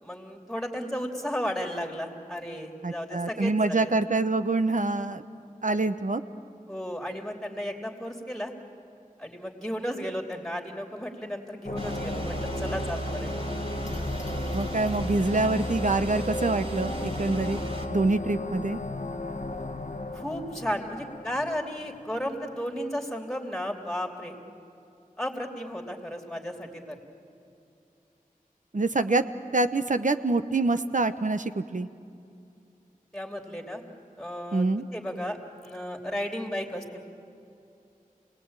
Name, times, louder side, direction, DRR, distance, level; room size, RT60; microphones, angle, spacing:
voice 1, 0.0-3.9 6.7-8.5 9.2-13.3 20.1-24.3 25.2-27.0 33.1-33.8 34.2-34.6 34.9-37.0, equal, 5° left, 2 dB, 3.2 m, -34 dB
voice 2, 2.8-5.2 5.6-6.2 14.5-17.6 17.9-18.8 28.7-29.2 29.5-31.9 34.5-34.8, right 3 dB, 60° right, 10 dB, 0.9 m, -25 dB
sound 1, 11.6-22.2, left 2 dB, 55° left, 1.0 m, -35 dB
sound 2, 11.7-17.9, right 2 dB, 45° right, 3.2 m, -35 dB
27.5 x 19.0 x 8.9 m, 2.6 s
wide cardioid pair, 45°, 15 cm